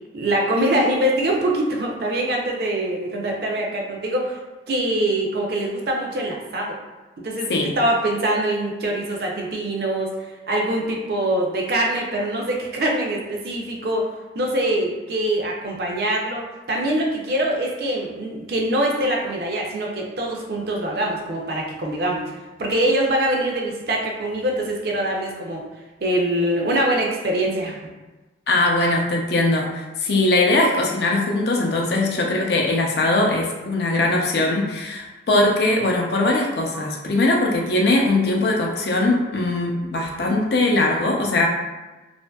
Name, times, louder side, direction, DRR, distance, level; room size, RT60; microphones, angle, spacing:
voice 1, 0.1-4.4 4.7-6.8 7.2-10.1 10.5-14.1 14.3-22.2 22.6-25.6 26.0-27.8 32.1-32.2, right 1 dB, 55° right, 0 dB, 0.4 m, -23 dB
voice 2, 28.5-41.5, left 2 dB, 60° left, -1 dB, 0.4 m, -20 dB
2.6 x 2.5 x 2.2 m, 1.2 s
head